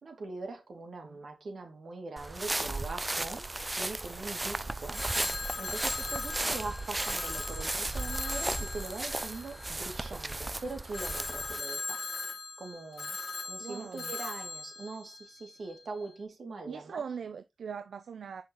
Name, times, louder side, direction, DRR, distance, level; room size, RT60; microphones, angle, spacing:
voice 1, 0.0-3.4 3.7-5.0 5.6-12.0 12.6-13.2 13.4-17.0, right 3 dB, 65° right, 2.6 m, -42 dB
sound 1, 2.2-11.6, right 2 dB, 25° right, 0.4 m, -35 dB
Telephone, 4.9-10.2 10.9-15.8, left 3 dB, 45° left, 1.0 m, -39 dB
voice 2, 13.6-14.1 16.7-18.4, right 6 dB, 85° right, 0.5 m, -41 dB
6.6 x 5.6 x 3.1 m
cardioid pair, 75°, 0 cm